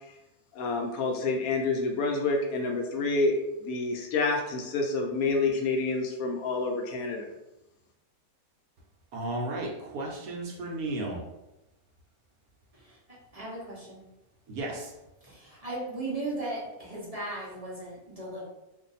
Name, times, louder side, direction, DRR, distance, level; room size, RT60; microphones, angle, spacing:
voice 1, 0.5-3.3 3.6-7.3, left 3 dB, 70° left, 1 dB, 1.0 m, -28 dB
voice 2, 9.1-11.2 14.5-14.9, right 2 dB, 70° right, -1 dB, 1.1 m, -34 dB
voice 3, 13.3-14.0 15.2-18.4, right 2 dB, 30° right, -7 dB, 0.8 m, -36 dB
2.7 x 2.5 x 3.9 m, 0.95 s
omnidirectional pair, 1.7 m